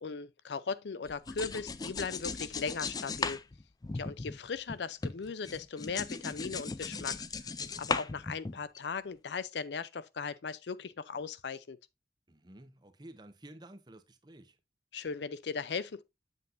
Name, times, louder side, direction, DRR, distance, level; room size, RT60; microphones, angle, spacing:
voice 1, 0.0-3.4 3.9-7.2 7.8-11.8 14.9-16.0, left 5 dB, 80° left, 0.5 m, -38 dB
sound 1, 1.1-4.8 5.0-8.8, left 4 dB, 20° left, 0.4 m, -37 dB
voice 2, 12.3-14.6, right 1 dB, 25° right, 0.8 m, -52 dB
8.0 x 7.4 x 2.5 m
head